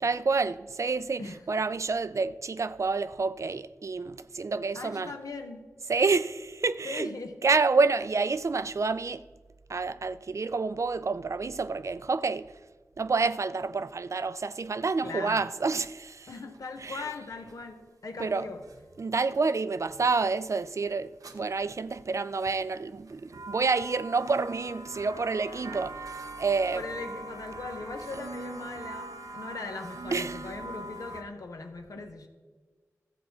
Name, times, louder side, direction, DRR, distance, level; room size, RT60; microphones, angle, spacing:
voice 1, 0.0-5.1 5.9-7.1 7.4-9.2 9.7-12.6 13.0-16.3 16.8-17.1 18.2-18.5 19.0-26.0 26.4-26.8 30.1-30.4, right 4 dB, 60° right, 0.4 m, -28 dB
voice 2, 4.7-5.7 6.8-7.4 15.0-15.5 16.3-18.6 25.5-25.8 26.7-32.3, left 3 dB, 85° left, 1.0 m, -39 dB
sound 1, 16.5-16.9 17.5-17.6 18.4-18.8 19.3-19.4 20.3-20.6 21.2-21.4 22.1-22.6 23.1-31.2, right 2 dB, 90° right, 0.7 m, -42 dB
13.5 x 7.3 x 4.2 m
cardioid pair, 45°, 6 cm